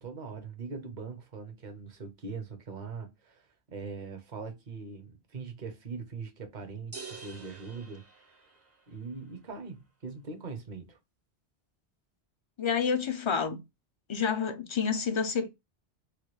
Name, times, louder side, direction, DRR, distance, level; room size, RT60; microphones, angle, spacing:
voice 1, 0.0-8.0 8.9-11.0, right 4 dB, 50° right, 0.9 m, -41 dB
sound 1, 6.9-9.0, right 4 dB, 20° right, 0.5 m, -47 dB
voice 2, 12.6-13.6 14.1-15.5, left 6 dB, 45° left, 0.4 m, -29 dB
3.1 x 2.2 x 3.0 m
omnidirectional pair, 1.1 m